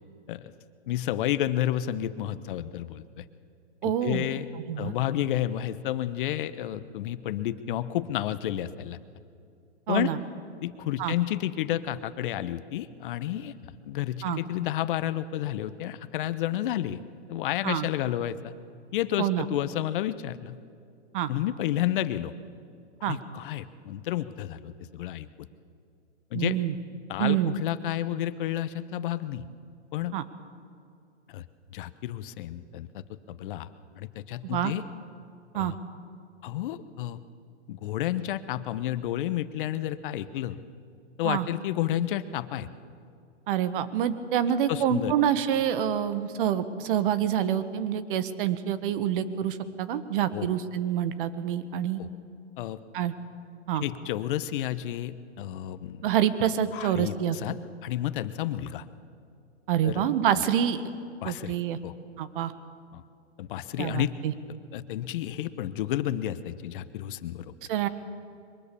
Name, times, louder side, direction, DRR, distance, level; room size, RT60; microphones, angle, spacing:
voice 1, 0.9-3.2 3.8-4.4 4.8-9.0 9.9-10.1 10.6-13.5 13.9-17.0 17.3-18.5 18.9-20.6 21.3-22.3 23.0-25.3 26.3-26.6 27.1-29.4 29.9-30.2 31.3-31.5 31.7-33.0 33.3-33.7 34.0-34.8 35.5-35.8 36.4-37.2 37.7-40.6 41.2-42.7 44.7-45.1 50.3-50.5 52.0-52.1 52.6-52.8 53.8-56.0 56.7-58.8 59.8-60.0 61.2-61.5 61.8-61.9 62.9-63.0 63.4-64.1 64.7-67.5, left 12 dB, 45° left, 14 dB, 1.1 m, -31 dB
voice 2, 3.8-4.3 4.7-4.9 9.9-10.2 11.0-11.1 14.2-14.4 17.6-17.9 19.2-19.5 21.1-21.3 23.0-23.2 26.3-26.7 27.2-27.5 30.1-30.2 34.4-34.7 35.5-35.7 41.2-41.5 43.5-52.0 52.9-53.1 53.7-53.8 56.0-57.4 59.7-60.8 61.2-61.8 62.2-62.5 63.8-64.3 67.7-67.9, right 10 dB, 50° right, 12 dB, 1.5 m, -27 dB
23.0 x 22.0 x 7.0 m, 2.5 s
hypercardioid pair, 135°, 35 cm